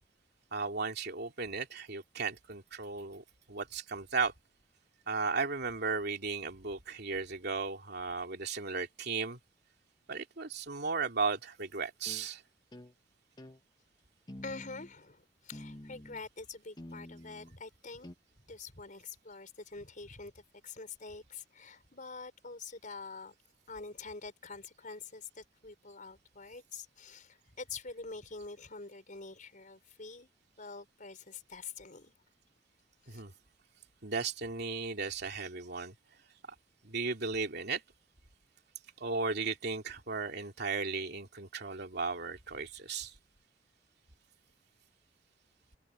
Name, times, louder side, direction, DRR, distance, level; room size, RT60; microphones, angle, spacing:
voice 1, 0.5-4.3 5.1-9.4 10.1-12.4 33.1-33.3 34.0-35.9 36.8-37.8 39.0-43.1, right 4 dB, 60° right, 3.0 m, -35 dB
sound 1, 12.1-12.3 12.7-12.9 13.4-13.6 14.3-14.9 15.5-16.2 16.8-17.5 18.0-18.1, left 1 dB, 25° left, 1.2 m, -48 dB
voice 2, 14.4-18.1 18.5-23.3 23.7-30.3 30.6-32.1 33.0-33.2, left 4 dB, 45° left, 5.4 m, -46 dB
head